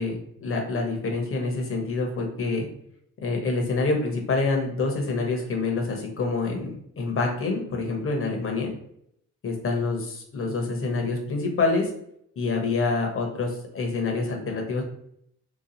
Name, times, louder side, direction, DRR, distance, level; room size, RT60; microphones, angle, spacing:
voice 1, 0.0-2.7 3.2-8.7 9.4-11.9 12.4-14.8, left 3 dB, 45° left, 2 dB, 1.1 m, -27 dB
2.9 x 2.4 x 3.9 m, 0.71 s
cardioid pair, 90°, 30 cm